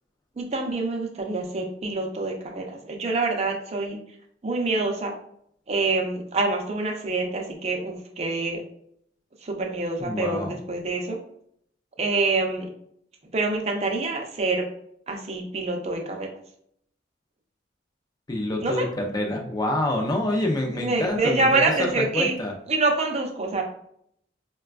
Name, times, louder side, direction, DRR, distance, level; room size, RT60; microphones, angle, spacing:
voice 1, 0.4-4.0 4.4-5.1 5.7-8.6 9.4-11.2 12.0-12.7 13.3-14.6 15.1-16.3 18.6-18.9 20.7-22.3 22.7-23.6, right 3 dB, 35° right, 2 dB, 0.6 m, -26 dB
voice 2, 10.0-10.5 18.3-21.6 22.0-22.5, left 1 dB, 20° left, 2 dB, 0.5 m, -27 dB
4.2 x 2.2 x 2.3 m, 0.69 s
head